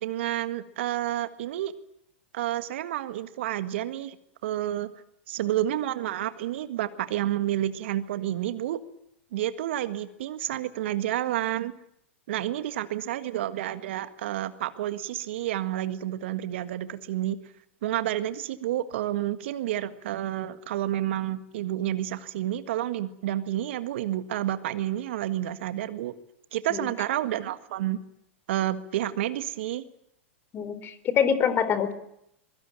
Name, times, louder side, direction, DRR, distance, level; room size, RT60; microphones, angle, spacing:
voice 1, 0.0-1.7 2.3-4.2 4.4-4.9 5.3-8.8 9.3-11.7 12.3-17.4 17.8-26.1 26.5-28.0 28.5-29.9, right 13 dB, 60° right, 11 dB, 1.7 m, -30 dB
voice 2, 30.5-31.9, left 8 dB, 30° left, 13 dB, 3.8 m, -25 dB
24.0 x 23.0 x 9.0 m, 0.77 s
hypercardioid pair, 100°, 7 cm